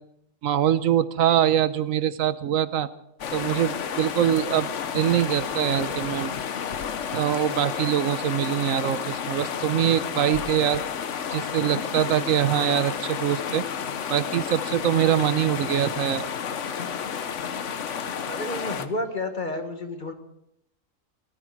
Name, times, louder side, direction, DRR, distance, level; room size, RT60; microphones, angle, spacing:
voice 1, 0.4-2.9 3.3-6.3 7.1-10.8 11.3-13.6 14.1-16.3, right 10 dB, 85° right, 14 dB, 1.2 m, -23 dB
sound 1, 3.2-18.9, left 7 dB, 65° left, 1.2 m, -31 dB
voice 2, 18.3-20.1, left 2 dB, 40° left, 6 dB, 1.5 m, -30 dB
18.5 x 14.0 x 4.7 m, 0.79 s
omnidirectional pair, 1.4 m